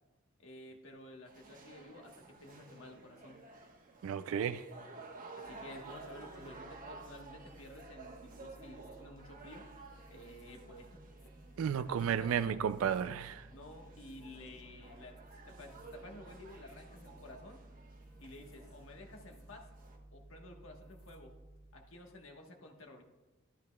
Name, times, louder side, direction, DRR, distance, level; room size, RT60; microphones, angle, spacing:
voice 1, 0.4-3.4 5.3-9.6 10.1-11.0 11.8-12.6 13.5-15.2 15.4-17.6 18.2-19.7 20.1-21.3 21.7-23.0, left 1 dB, 70° left, 1.3 m, -52 dB
sound 1, 1.3-20.0, right 3 dB, 40° right, 1.2 m, -54 dB
voice 2, 4.0-4.6 11.6-13.5, right 8 dB, 75° right, 0.3 m, -33 dB
sound 2, 5.4-22.0, right 1 dB, 10° left, 2.4 m, -57 dB
12.0 x 11.5 x 2.3 m
head